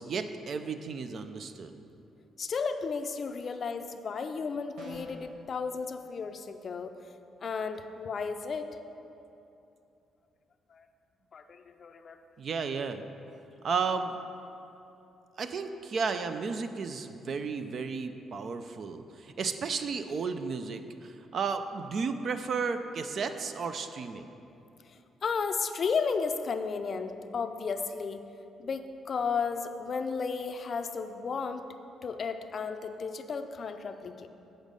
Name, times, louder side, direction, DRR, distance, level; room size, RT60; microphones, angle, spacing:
voice 1, 0.0-1.7 12.4-13.0 13.6-14.2 15.4-24.3, right 5 dB, 55° right, 8 dB, 0.4 m, -33 dB
voice 2, 2.4-6.9 7.4-8.7 10.7-10.9 11.3-12.2 24.8-28.2 28.6-31.6 32.0-34.3, left 5 dB, 50° left, 8 dB, 0.4 m, -33 dB
sound 1, 4.8-5.3, equal, 75° right, 1.4 m, -45 dB
8.0 x 5.1 x 5.3 m, 2.8 s
cardioid pair, 90°, 0 cm